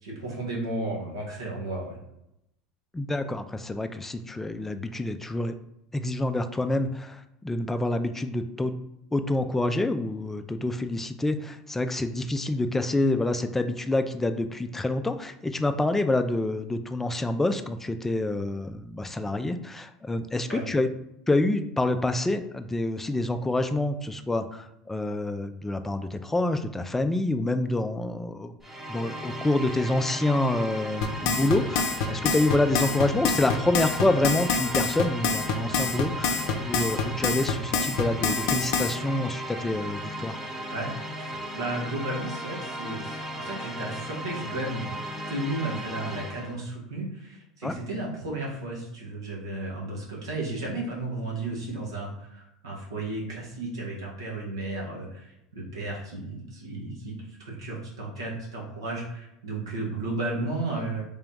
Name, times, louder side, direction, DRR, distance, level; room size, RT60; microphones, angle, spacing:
voice 1, 0.0-2.0 20.5-20.6 40.7-40.9 41.2-45.0 45.3-61.0, right 2 dB, 90° right, -3 dB, 1.2 m, -34 dB
voice 2, 2.9-5.6 5.9-8.8 9.1-20.9 21.3-28.5 28.9-40.4 47.6-47.8, left 2 dB, 10° left, 9 dB, 0.4 m, -27 dB
sound 1, 28.6-46.6, equal, 15° right, 0.9 m, -36 dB
sound 2, 31.0-39.0, left 5 dB, 65° left, 0.6 m, -26 dB
3.5 x 2.8 x 3.5 m, 0.82 s
hypercardioid pair, 85°, 3 cm